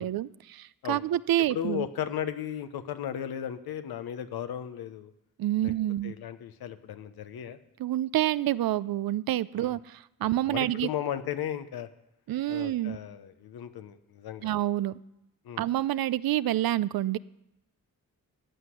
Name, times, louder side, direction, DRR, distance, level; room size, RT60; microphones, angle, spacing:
voice 1, 0.0-1.9 5.4-6.1 7.8-10.9 12.3-13.0 14.4-14.9 15.6-17.2, right 13 dB, 75° right, 18 dB, 0.5 m, -28 dB
voice 2, 1.5-5.1 5.6-5.7 6.0-7.6 9.6-9.8 10.2-11.9 12.5-14.5 15.4-15.6, left 10 dB, 85° left, 10 dB, 0.9 m, -35 dB
14.5 x 6.0 x 9.7 m, 0.86 s
cardioid pair, 50°, 36 cm